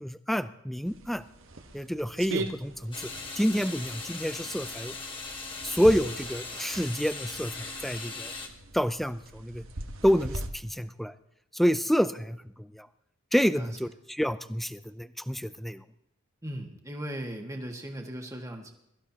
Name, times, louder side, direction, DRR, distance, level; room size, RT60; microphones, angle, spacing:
voice 1, 0.0-1.2 1.7-3.1 3.4-4.9 5.6-8.3 8.7-9.6 10.0-11.1 11.5-12.4 12.7-12.9 13.3-15.8, equal, ahead, 12 dB, 0.5 m, -28 dB
sound 1, 0.8-10.5, right 2 dB, 65° right, 1.3 m, -41 dB
sound 2, 2.9-8.5, left 3 dB, 25° left, 1.7 m, -39 dB
voice 2, 16.4-18.7, equal, 15° right, 2 dB, 1.9 m, -38 dB
23.0 x 14.0 x 2.9 m, 0.80 s
head